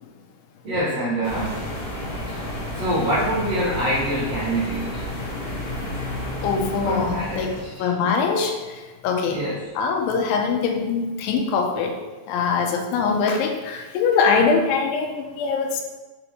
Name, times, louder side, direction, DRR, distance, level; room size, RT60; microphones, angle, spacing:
voice 1, 0.6-1.5 2.7-5.0 6.8-7.9 9.3-9.6, right 1 dB, 80° right, -8 dB, 1.4 m, -25 dB
sound 1, 1.2-7.7, left 1 dB, 70° left, 2.0 m, -31 dB
voice 2, 6.4-8.5 9.0-9.4 9.8-11.9 12.3-15.8, left 5 dB, 85° left, 3 dB, 3.1 m, -22 dB
6.0 x 5.3 x 3.0 m, 1.2 s
omnidirectional pair, 5.3 m